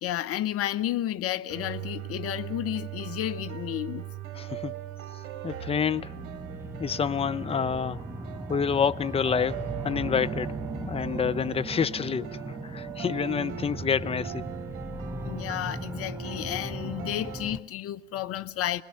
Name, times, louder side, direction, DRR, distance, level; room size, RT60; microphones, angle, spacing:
voice 1, 0.0-4.1 13.4-13.5 15.2-18.8, left 12 dB, 40° left, 1.2 m, -32 dB
sound 1, 1.5-17.5, right 11 dB, 55° right, 3.9 m, -40 dB
voice 2, 4.3-4.7 5.4-6.3 6.8-8.0 8.5-14.5, left 6 dB, 15° left, 0.8 m, -28 dB
sound 2, 5.7-17.6, right 1 dB, 5° right, 1.2 m, -38 dB
27.5 x 20.0 x 5.7 m
figure-of-eight pair, 75°, 36 cm